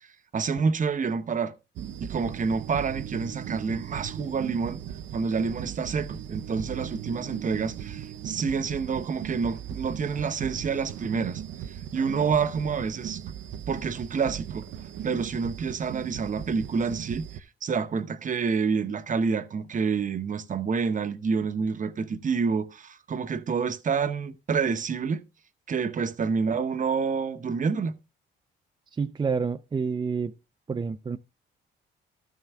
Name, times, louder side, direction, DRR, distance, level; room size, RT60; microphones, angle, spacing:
voice 1, 0.3-1.5 2.0-4.8 5.1-11.4 11.7-13.2 13.7-14.7 15.0-25.2 25.7-27.9, right 5 dB, 40° right, 0.9 m, -28 dB
sound 1, 1.8-17.4, right 10 dB, 75° right, 0.6 m, -38 dB
voice 2, 28.9-30.3 30.7-31.2, right 5 dB, 20° right, 0.4 m, -28 dB
13.0 x 5.6 x 3.5 m
cardioid pair, 90°, 20 cm